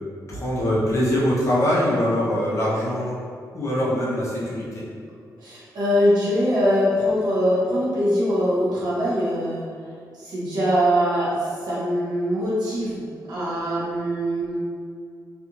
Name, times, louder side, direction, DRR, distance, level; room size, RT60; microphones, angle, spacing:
voice 1, 0.3-3.2 3.5-4.8, equal, 45° left, -7 dB, 0.8 m, -23 dB
voice 2, 5.4-9.7 10.2-14.5, equal, 70° right, -8 dB, 1.1 m, -22 dB
3.3 x 2.5 x 2.9 m, 2.2 s
wide cardioid pair, 155°, 7 cm